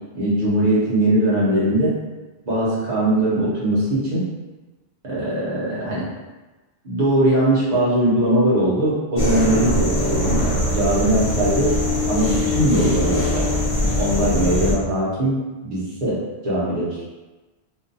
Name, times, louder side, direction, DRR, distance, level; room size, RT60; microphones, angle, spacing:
voice 1, 0.1-2.0 2.4-4.3 5.0-6.1 6.8-11.7 12.1-13.5 14.0-15.3 15.6-16.2 16.4-17.0, right 1 dB, 45° right, -9 dB, 1.0 m, -20 dB
sound 1, 9.2-14.7, left 1 dB, 40° left, 0.5 m, -21 dB
2.6 x 2.4 x 2.6 m, 1.2 s
omnidirectional pair, 1.1 m